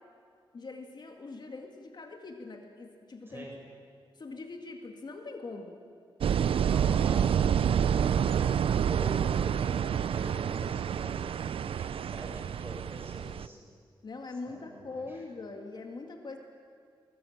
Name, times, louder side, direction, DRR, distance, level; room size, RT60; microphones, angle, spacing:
voice 1, 0.5-3.5 4.2-5.8 14.0-16.4, left 3 dB, 50° left, 4 dB, 2.1 m, -42 dB
sound 1, 6.2-13.5, right 8 dB, 80° right, 0.5 m, -28 dB
voice 2, 6.3-8.5 8.9-13.6 14.5-15.2, right 1 dB, 25° right, -2 dB, 7.6 m, -44 dB
22.5 x 20.0 x 8.8 m, 2.1 s
wide cardioid pair, 105°, 9 cm